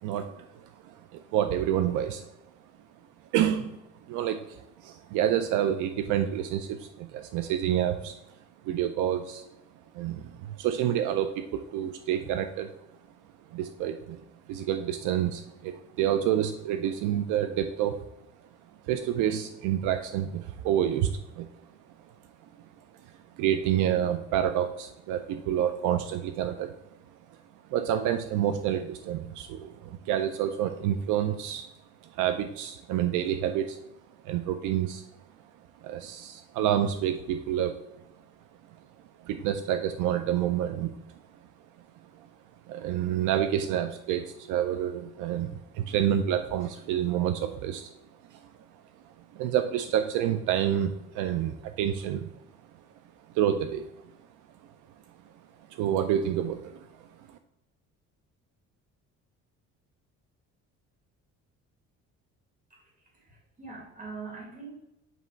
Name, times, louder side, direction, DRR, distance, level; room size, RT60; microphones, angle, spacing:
voice 1, 0.0-2.3 3.3-3.8 4.1-8.2 8.6-9.5 9.9-12.7 13.5-14.2 14.5-18.1 18.8-21.5 23.0-26.7 27.7-31.7 32.0-33.8 34.2-35.1 35.8-37.8 39.2-41.2 42.7-47.9 48.3-48.5 49.3-52.3 53.3-53.9 55.7-56.9 57.3-57.4, right 10 dB, 75° right, 8 dB, 0.5 m, -28 dB
voice 2, 62.7-64.8, right 4 dB, 25° right, -1 dB, 2.0 m, -43 dB
8.0 x 3.0 x 4.5 m, 0.89 s
cardioid pair, 155°, 31 cm